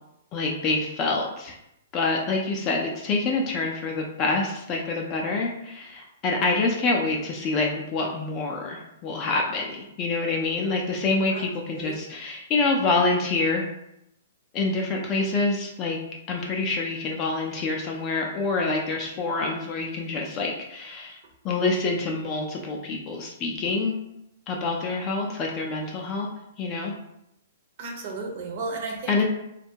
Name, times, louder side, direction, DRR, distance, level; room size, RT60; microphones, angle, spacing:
voice 1, 0.3-1.6 1.9-13.7 14.5-16.0 16.3-21.2 21.4-23.9 24.5-26.3 26.6-26.9 29.1-29.2, left 3 dB, 20° left, 0 dB, 0.3 m, -26 dB
voice 2, 11.3-12.0 27.8-29.2, right 3 dB, 40° right, 1 dB, 0.6 m, -34 dB
2.6 x 2.2 x 2.7 m, 0.81 s
hypercardioid pair, 165°, 0 cm